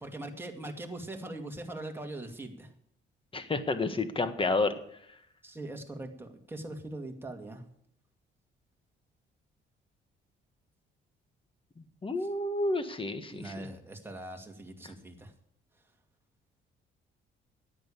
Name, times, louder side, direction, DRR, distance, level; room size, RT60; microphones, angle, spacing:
voice 1, 0.0-2.7 5.4-7.6 12.2-12.3 13.3-15.3, right 1 dB, 10° right, 2 dB, 2.3 m, -41 dB
voice 2, 3.3-4.7 12.0-13.5, left 2 dB, 25° left, 10 dB, 1.6 m, -30 dB
10.5 x 9.0 x 8.5 m, 0.72 s
cardioid pair, 90°, 20 cm